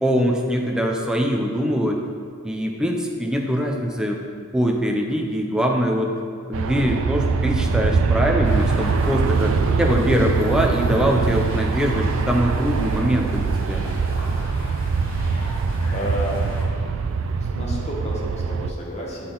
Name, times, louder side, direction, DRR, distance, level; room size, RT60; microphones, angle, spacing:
voice 1, 0.0-2.0 2.4-4.2 4.5-6.1 6.5-13.8, equal, 5° right, 0 dB, 0.5 m, -22 dB
Aircraft, 6.5-18.7, right 4 dB, 70° right, 0.3 m, -23 dB
sound 1, 8.4-16.6, left 1 dB, 65° left, 1.5 m, -39 dB
voice 2, 15.9-16.5 17.4-19.3, equal, 30° left, -4 dB, 1.2 m, -31 dB
8.4 x 3.9 x 3.9 m, 2.3 s
head